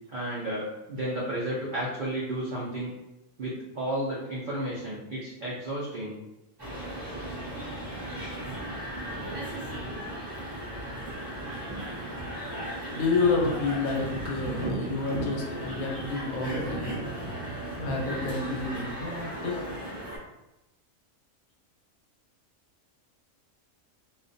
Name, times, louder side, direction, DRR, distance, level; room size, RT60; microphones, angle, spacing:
voice 1, 0.1-2.9 3.4-6.2, right 1 dB, 80° right, -6 dB, 0.4 m, -32 dB
sound 1, 6.6-20.2, right 1 dB, 20° right, 0.7 m, -35 dB
voice 2, 12.9-17.0 17.8-19.5, left 4 dB, 90° left, 0 dB, 1.1 m, -29 dB
2.4 x 2.2 x 2.5 m, 0.93 s
omnidirectional pair, 1.5 m